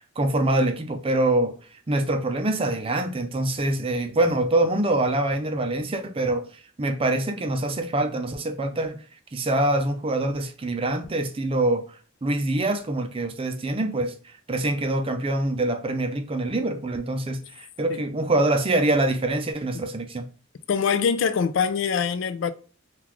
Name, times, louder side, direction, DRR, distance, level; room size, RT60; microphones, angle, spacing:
voice 1, 0.2-1.6 1.9-6.5 6.8-9.0 9.3-11.9 12.2-14.1 14.5-20.3, right 2 dB, 25° right, 0.5 m, -24 dB
voice 2, 20.7-22.5, left 6 dB, 65° left, 0.4 m, -23 dB
3.8 x 2.4 x 2.9 m
head